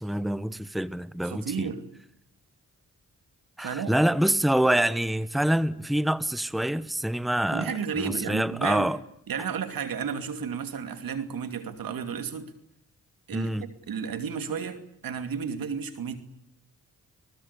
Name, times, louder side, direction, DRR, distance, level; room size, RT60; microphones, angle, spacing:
voice 1, 0.0-1.7 3.6-9.0 13.3-13.6, right 1 dB, ahead, 1.1 m, -26 dB
voice 2, 1.2-1.9 3.6-4.0 7.5-8.9 9.3-12.5 13.3-14.8 15.0-16.2, right 6 dB, 80° right, 2.7 m, -32 dB
30.0 x 20.0 x 8.4 m
cardioid pair, 60°, 34 cm